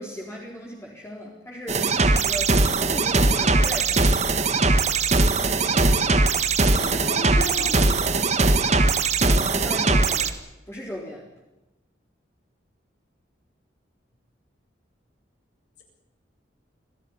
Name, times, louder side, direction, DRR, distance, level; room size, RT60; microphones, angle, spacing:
voice 1, 0.0-4.2 9.2-10.4 10.7-11.2, equal, 15° left, -3 dB, 4.1 m, -37 dB
sound 1, 1.7-10.3, right 3 dB, 35° right, 1.6 m, -20 dB
voice 2, 6.8-7.8, left 1 dB, 70° left, 3 dB, 7.7 m, -34 dB
26.0 x 17.0 x 9.9 m, 1.0 s
head